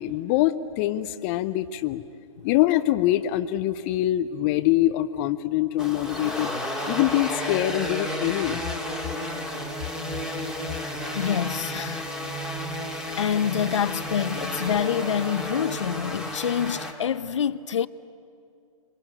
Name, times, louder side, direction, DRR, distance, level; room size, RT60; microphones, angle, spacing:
voice 1, 0.0-2.0 2.4-6.5 6.9-8.6, left 14 dB, 25° left, 0.5 m, -24 dB
sound 1, 5.8-16.9, left 1 dB, 5° right, 1.9 m, -32 dB
voice 2, 10.8-12.0 13.2-17.9, left 8 dB, 55° left, 0.7 m, -27 dB
27.5 x 22.0 x 8.9 m
hypercardioid pair, 135°, 18 cm